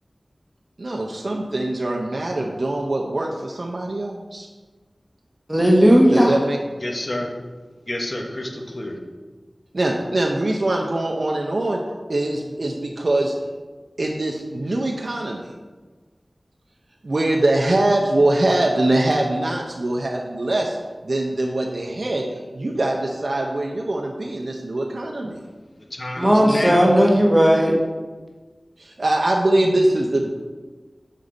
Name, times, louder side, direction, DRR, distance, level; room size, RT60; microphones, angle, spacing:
voice 1, 0.8-4.5 6.1-6.6 9.7-11.8 12.1-13.3 14.0-15.5 17.0-20.8 21.0-25.4 28.8-30.3, right 1 dB, 65° right, -1 dB, 0.6 m, -23 dB
voice 2, 5.5-6.3 26.2-27.8, equal, 15° right, -2 dB, 1.2 m, -15 dB
voice 3, 6.8-7.3 7.9-9.0 25.9-26.9, left 1 dB, 45° left, 1 dB, 1.2 m, -28 dB
6.5 x 5.3 x 3.9 m, 1.3 s
wide cardioid pair, 45°, 0 cm